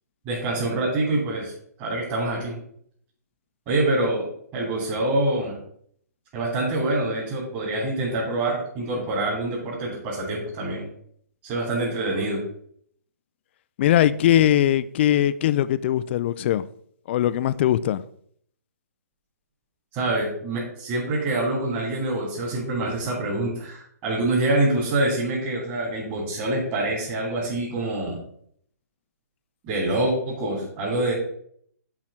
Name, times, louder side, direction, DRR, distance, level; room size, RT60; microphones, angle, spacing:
voice 1, 0.2-1.5 1.8-2.6 3.7-5.6 6.3-10.8 11.4-12.4 19.9-28.2 29.6-31.1, right 2 dB, 30° right, 3.4 m, -25 dB
voice 2, 13.8-16.6 17.1-18.0, left 12 dB, 40° left, 0.4 m, -20 dB
7.5 x 4.7 x 5.7 m
hypercardioid pair, 140°, 9 cm